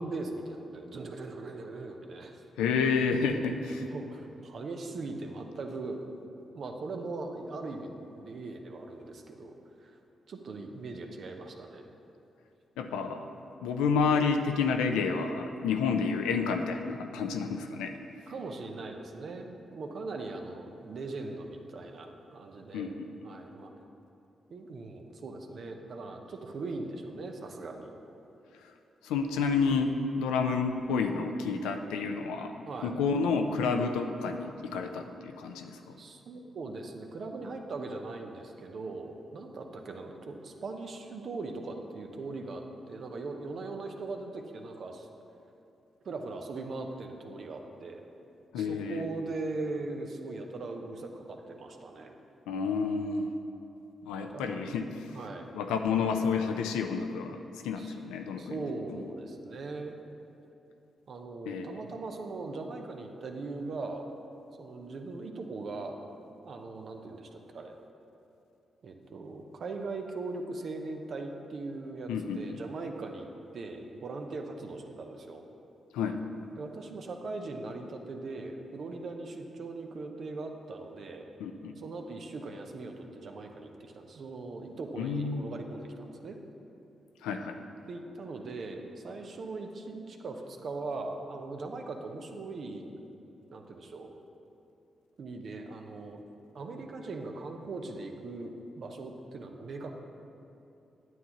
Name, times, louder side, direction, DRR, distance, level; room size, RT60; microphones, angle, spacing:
voice 1, 0.0-2.4 2.8-2.9 3.8-6.0 6.5-10.0 10.3-11.9 18.3-22.9 23.2-23.7 24.5-27.9 32.7-32.9 36.0-45.1 46.0-48.0 48.6-52.2 54.3-54.6 55.1-55.5 57.8-58.0 58.4-60.0 61.1-64.1 64.6-66.0 66.4-67.7 68.8-75.4 76.6-81.2 81.8-86.4 87.9-92.9 93.5-94.1 95.2-96.2 96.5-99.9, right 3 dB, 65° right, 3 dB, 0.8 m, -40 dB
voice 2, 2.6-3.9 12.8-13.3 13.6-18.0 22.7-23.1 29.0-36.0 48.5-49.1 52.5-53.3 54.0-55.2 55.5-58.6 58.9-59.0 61.5-61.8 72.1-72.6 75.9-76.2 81.4-81.8 85.0-85.5 87.2-87.6, left 5 dB, 90° left, 5 dB, 0.4 m, -30 dB
9.2 x 8.0 x 3.0 m, 2.8 s
supercardioid pair, 45°, 0 cm